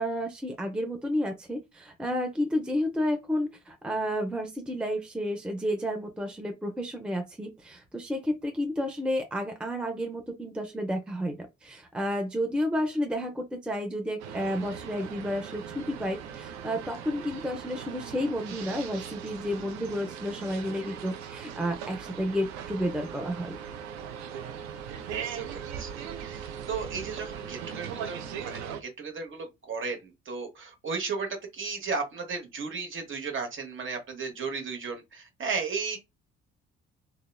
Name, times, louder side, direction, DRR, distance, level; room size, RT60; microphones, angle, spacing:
voice 1, 0.0-23.5, equal, 5° right, 0.5 m, -31 dB
sound 1, 14.2-28.8, right 8 dB, 60° right, 0.5 m, -39 dB
voice 2, 25.2-36.0, right 4 dB, 40° right, 0.9 m, -35 dB
2.9 x 2.1 x 2.2 m
figure-of-eight pair, 50°, 32 cm